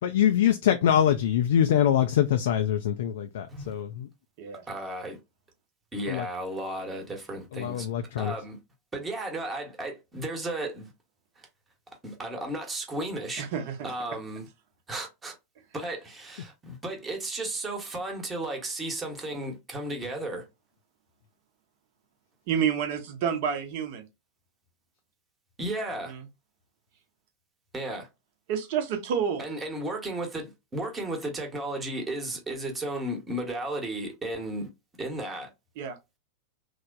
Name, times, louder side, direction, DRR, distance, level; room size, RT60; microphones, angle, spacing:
voice 1, 0.0-4.1 6.1-6.2 7.5-8.3, left 10 dB, 55° left, 0.3 m, -24 dB
voice 2, 4.7-5.2 5.9-7.9 8.2-8.6 8.9-10.9 12.0-13.5 13.8-14.4 14.9-15.3 15.7-20.4 25.6-26.1 27.7-28.1 29.4-34.7 35.0-35.5, right 1 dB, 15° right, 1.0 m, -34 dB
voice 3, 13.4-13.9 22.5-24.1 26.1-26.2 28.5-29.4 35.8-36.0, right 7 dB, 50° right, 0.8 m, -29 dB
3.2 x 2.1 x 2.5 m
figure-of-eight pair, 90°, 0 cm